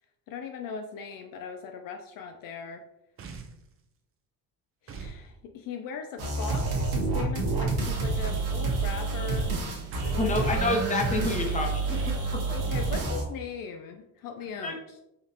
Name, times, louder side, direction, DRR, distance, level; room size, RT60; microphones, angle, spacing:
voice 1, 0.3-2.8 4.8-9.5 10.0-10.5 12.5-15.0, left 6 dB, 65° left, 5 dB, 0.5 m, -39 dB
sound 1, 3.2-3.7 4.9-5.2 6.5-6.8 8.2-8.6 9.9-10.3 11.9-12.3, right 5 dB, 35° right, 0.6 m, -42 dB
sound 2, 6.2-13.2, right 3 dB, 70° right, 1.3 m, -28 dB
voice 2, 10.2-12.1 14.6-14.8, left 2 dB, 20° left, 1 dB, 0.9 m, -28 dB
5.1 x 2.5 x 2.8 m, 0.85 s
cardioid pair, 105°, 36 cm